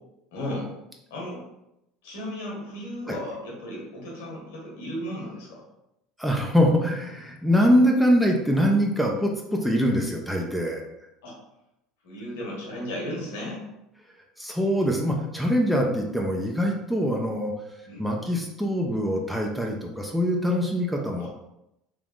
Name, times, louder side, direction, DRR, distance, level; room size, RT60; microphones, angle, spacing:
voice 1, 0.3-0.7 1.1-1.4 2.0-5.6 11.2-11.3 12.0-13.6 17.9-18.0 21.2-21.3, left 1 dB, 80° left, -3 dB, 1.3 m, -35 dB
voice 2, 6.2-10.8 14.4-17.5 18.0-21.3, equal, ahead, 0 dB, 0.6 m, -23 dB
3.4 x 2.9 x 2.4 m, 0.86 s
hypercardioid pair, 80°, 0 cm